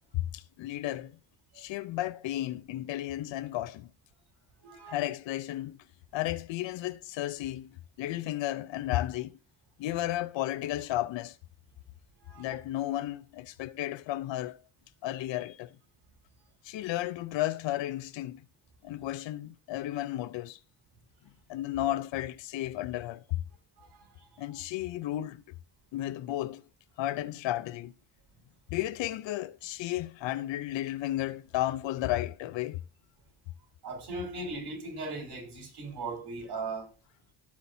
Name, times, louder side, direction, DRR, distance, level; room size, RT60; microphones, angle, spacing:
voice 1, 0.1-1.2 1.6-3.9 4.9-5.8 6.1-9.4 9.8-11.4 12.4-14.6 15.0-15.8 16.6-18.4 18.8-20.6 21.5-23.4 24.4-25.4 25.9-26.6 27.0-27.9 28.7-32.8, left 14 dB, 90° left, 0.8 m, -33 dB
voice 2, 4.6-5.0 12.3-12.5 23.8-24.3 33.8-36.9, right 3 dB, 60° right, 5.8 m, -38 dB
16.5 x 6.0 x 2.8 m
cardioid pair, 130°, 44 cm